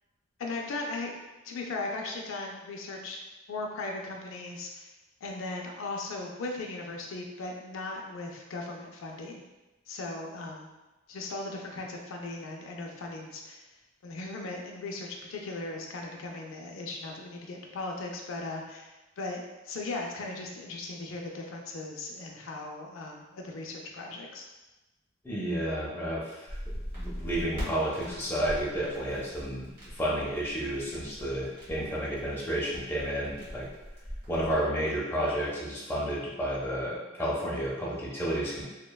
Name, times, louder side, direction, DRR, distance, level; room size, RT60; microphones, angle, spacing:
voice 1, 0.4-1.1 1.4-3.2 3.5-4.9 5.2-9.4 9.9-10.7 11.1-13.6 14.0-24.4, left 2 dB, 85° left, 1 dB, 0.4 m, -38 dB
voice 2, 25.2-26.5 26.9-33.7 34.3-38.6, right 1 dB, 10° left, -6 dB, 0.5 m, -31 dB
sound 1, 26.5-34.6, equal, 45° right, 1.3 m, -41 dB
2.9 x 2.1 x 2.2 m, 1.1 s
head